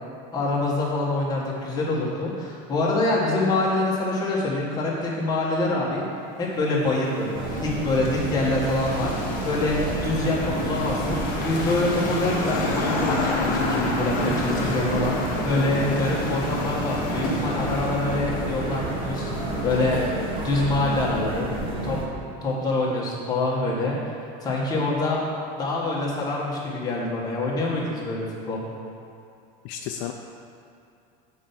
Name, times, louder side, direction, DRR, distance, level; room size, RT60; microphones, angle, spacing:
voice 1, 0.3-6.0 6.4-9.8 10.0-19.3 19.6-20.0 20.4-21.5 21.8-22.0 22.4-24.0 24.4-25.2 25.6-28.6, left 2 dB, 20° left, -5 dB, 1.4 m, -25 dB
sound 1, 6.4-20.9, left 2 dB, 40° left, 1.2 m, -30 dB
sound 2, 7.3-22.1, right 2 dB, 25° right, 0.8 m, -31 dB
voice 2, 29.6-30.1, left 11 dB, 60° left, 4 dB, 0.4 m, -32 dB
7.4 x 4.5 x 5.6 m, 2.5 s
cardioid pair, 160°, 21 cm